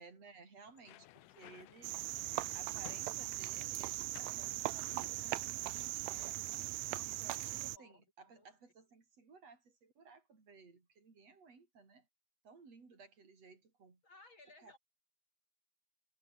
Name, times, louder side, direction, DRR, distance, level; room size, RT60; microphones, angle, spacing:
voice 1, 0.0-2.0 2.5-6.4 7.0-12.1 12.4-14.0 14.6-14.8, right 4 dB, 45° right, 5.9 m, -58 dB
sound 1, 0.7-3.6 4.1-4.4 5.0-6.2 6.5-6.7, left 17 dB, 75° left, 2.2 m, -57 dB
Cricket, 1.8-7.8, right 17 dB, 80° right, 1.6 m, -39 dB
voice 2, 6.8-7.5 7.7-8.0 8.3-8.5 14.0-14.8, left 2 dB, 35° left, 6.1 m, -61 dB
omnidirectional pair, 3.9 m